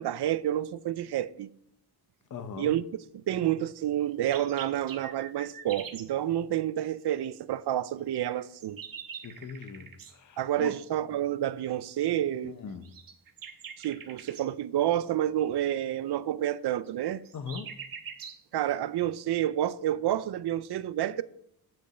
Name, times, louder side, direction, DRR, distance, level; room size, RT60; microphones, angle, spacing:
voice 1, 0.0-1.5 2.6-2.9 3.1-8.8 10.4-12.6 13.8-17.2 18.5-21.2, right 12 dB, 80° right, 0.6 m, -29 dB
voice 2, 2.3-2.7 9.2-10.7 12.4-12.9 17.3-17.8, left 6 dB, 50° left, 0.8 m, -40 dB
sound 1, 4.0-6.1 8.1-10.1 12.8-14.5 16.8-18.4, right 7 dB, 60° right, 1.1 m, -44 dB
9.3 x 5.3 x 5.0 m
wide cardioid pair, 150°, 40 cm